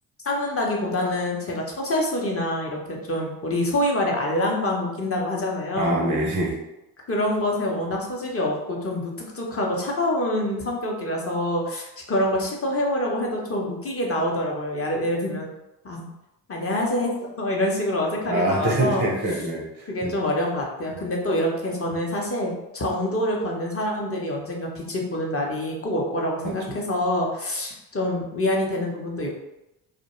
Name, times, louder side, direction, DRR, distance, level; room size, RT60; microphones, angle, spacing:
voice 1, 0.2-6.0 7.1-15.5 15.8-16.1 16.5-19.1 19.9-29.3, left 1 dB, 25° left, -1 dB, 0.8 m, -26 dB
voice 2, 5.8-6.6 18.3-20.1 26.4-26.6, right 1 dB, 20° right, -1 dB, 0.5 m, -25 dB
2.3 x 2.1 x 3.0 m, 0.91 s
hypercardioid pair, 50°, 50 cm